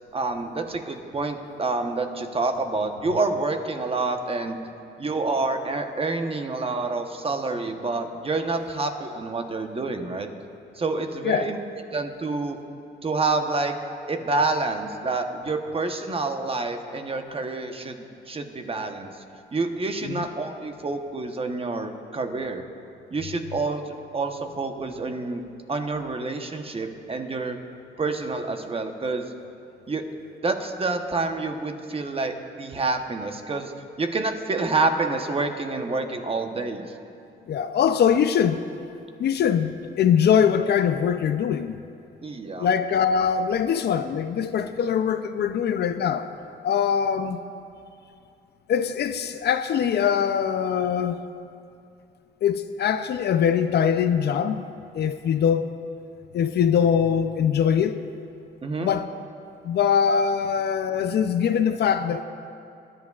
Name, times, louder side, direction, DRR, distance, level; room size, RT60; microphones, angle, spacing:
voice 1, 0.1-4.6 5.0-10.3 10.8-11.6 11.9-12.6 13.0-13.7 14.1-19.1 19.5-22.6 23.1-25.4 25.7-27.6 28.0-29.3 29.9-30.0 30.4-33.7 34.0-36.9 42.2-42.7 58.6-58.9, right 3 dB, 30° right, 5 dB, 1.0 m, -28 dB
voice 2, 37.5-38.6 39.2-41.8 42.6-46.3 46.6-47.4 48.7-51.2 52.4-54.6 54.9-55.7 56.3-58.0 58.8-59.1 59.6-62.2, left 8 dB, 55° left, 10 dB, 0.5 m, -22 dB
20.5 x 11.0 x 2.4 m, 2.5 s
cardioid pair, 90°, 20 cm